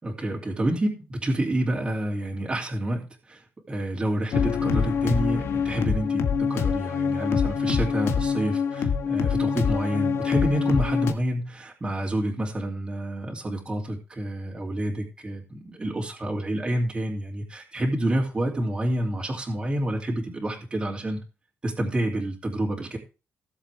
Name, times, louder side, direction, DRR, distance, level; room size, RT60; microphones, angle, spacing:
voice 1, 0.0-21.2 21.6-23.0, right 1 dB, 20° right, -1 dB, 2.8 m, -28 dB
sound 1, 4.3-11.1, left 6 dB, 75° left, 1.5 m, -25 dB
17.5 x 7.4 x 3.5 m, 0.32 s
wide cardioid pair, 145°, 4 cm